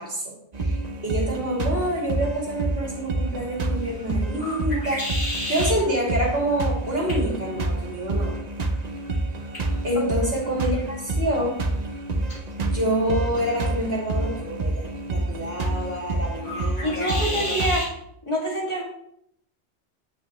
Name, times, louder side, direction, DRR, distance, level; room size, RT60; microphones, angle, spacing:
voice 1, 0.0-8.4 9.8-11.6 12.6-17.5, right 1 dB, 60° right, -4 dB, 2.9 m, -27 dB
sound 1, 0.5-17.8, right 2 dB, 40° right, 0.8 m, -28 dB
sound 2, 2.6-17.9, left 1 dB, 45° left, 2.7 m, -37 dB
voice 2, 16.8-17.9 18.3-18.8, equal, 25° left, -4 dB, 2.0 m, -26 dB
8.8 x 8.6 x 3.0 m, 0.73 s
omnidirectional pair, 1.2 m